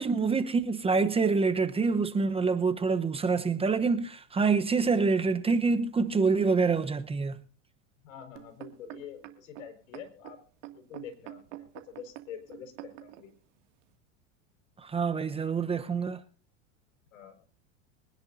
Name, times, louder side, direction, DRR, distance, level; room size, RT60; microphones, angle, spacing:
voice 1, 0.0-7.3 14.8-16.2, right 4 dB, 15° right, 0.9 m, -26 dB
voice 2, 8.0-10.4 10.7-13.3 17.1-17.4, left 8 dB, 80° left, 5.0 m, -46 dB
sound 1, 8.4-13.2 13.9-14.0, right 16 dB, 70° right, 2.4 m, -46 dB
25.0 x 10.5 x 2.7 m
supercardioid pair, 125°, 38 cm